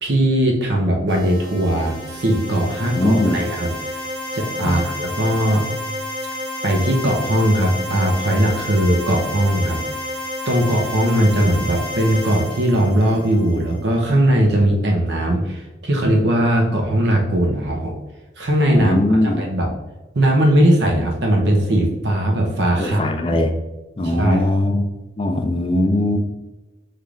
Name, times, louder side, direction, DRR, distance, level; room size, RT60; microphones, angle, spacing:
voice 1, 0.0-4.0 4.3-5.7 6.6-9.8 10.5-18.0 18.4-19.0 19.2-19.7 20.1-23.1 24.0-24.5, right 1 dB, 75° right, 0 dB, 0.7 m, -19 dB
sound 1, 1.1-13.8, left 1 dB, 25° right, 1.5 m, -30 dB
voice 2, 3.0-3.4 4.6-4.8 18.7-19.4 21.3-21.5 22.8-23.5 24.0-24.9 25.2-26.2, left 1 dB, 30° left, 5 dB, 0.4 m, -20 dB
5.5 x 3.3 x 2.4 m, 1.1 s
head